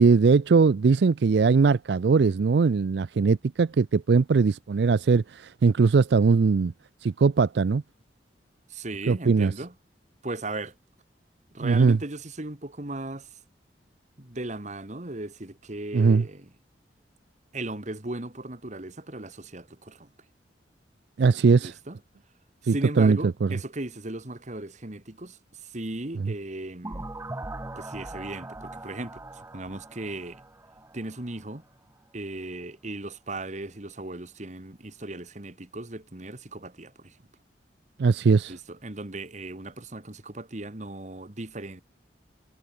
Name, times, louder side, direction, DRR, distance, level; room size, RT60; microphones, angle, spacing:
voice 1, 0.0-6.7 7.0-7.8 9.1-9.5 11.6-12.0 15.9-16.2 21.2-21.7 22.7-23.5 26.2-26.3 38.0-38.5, right 4 dB, 65° right, 0.4 m, -20 dB
voice 2, 8.7-9.7 10.2-10.7 11.5-13.3 14.2-16.5 17.5-20.1 21.6-22.0 22.6-27.1 27.8-30.4 30.9-31.6 32.1-37.2 38.5-41.8, right 2 dB, 40° right, 1.8 m, -37 dB
sound 1, 26.8-31.5, right 2 dB, 15° right, 0.6 m, -40 dB
head